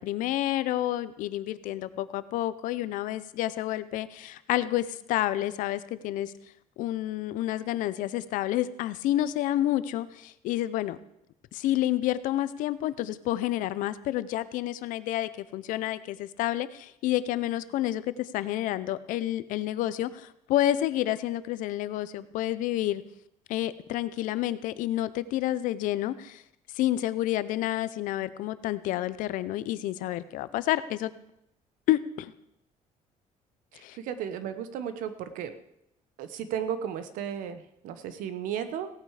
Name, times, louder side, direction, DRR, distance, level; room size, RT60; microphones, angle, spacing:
voice 1, 0.0-6.3 6.8-11.0 11.5-23.0 23.5-26.4 26.7-31.1 31.9-32.3 33.8-34.0, left 13 dB, 80° left, 15 dB, 0.7 m, -29 dB
voice 2, 33.7-35.5 36.2-38.9, right 9 dB, 85° right, 11 dB, 1.1 m, -34 dB
17.0 x 8.9 x 4.9 m, 0.80 s
cardioid pair, 170°, 13 cm